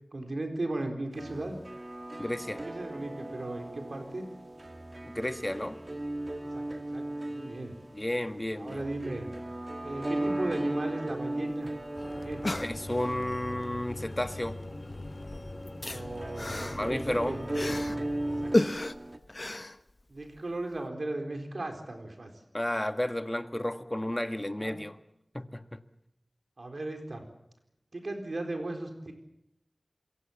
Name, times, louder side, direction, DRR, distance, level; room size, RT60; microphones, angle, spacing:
voice 1, 0.1-1.5 2.6-4.2 6.5-6.6 6.9-7.7 8.6-9.3 9.8-11.7 12.1-12.4 15.8-17.4 18.4-18.7 20.1-22.3 24.6-24.8 26.6-27.2 27.9-29.1, right 2 dB, 75° right, 4 dB, 4.2 m, -36 dB
sound 1, 1.2-19.2, right 1 dB, 40° right, 2.2 m, -37 dB
voice 2, 2.2-2.6 5.1-5.8 7.9-8.8 12.6-14.6 16.7-17.4 22.5-25.0 25.3-25.8, left 1 dB, 20° left, 9 dB, 1.6 m, -32 dB
sound 2, 11.5-11.6 11.8-11.9 12.2-13.2 14.3-14.6 14.9-18.1 18.5-20.4 20.8-20.9, left 1 dB, 45° left, 1.0 m, -33 dB
sound 3, 11.9-18.5, left 2 dB, 65° left, 3.1 m, -42 dB
27.0 x 22.5 x 7.2 m, 0.80 s
wide cardioid pair, 50°, 0 cm